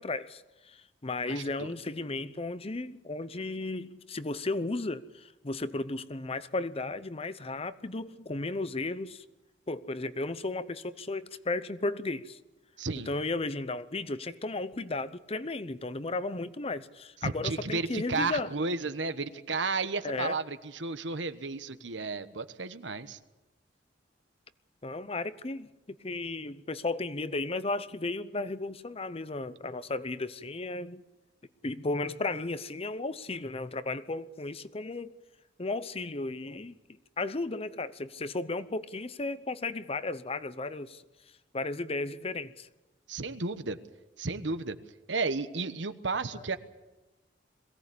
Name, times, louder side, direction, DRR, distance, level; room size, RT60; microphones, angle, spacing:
voice 1, 0.0-9.2 9.7-12.4 13.1-18.5 20.0-20.4 24.8-25.7 26.0-31.0 31.6-35.1 35.6-36.8 37.2-41.0 41.5-42.7 46.3-46.4, left 2 dB, 30° left, 0.8 m, -34 dB
voice 2, 1.3-1.7 12.8-13.1 17.2-23.2 43.1-43.8 44.2-44.8 45.1-46.6, right 3 dB, 75° right, 1.2 m, -33 dB
22.0 x 17.0 x 8.5 m
head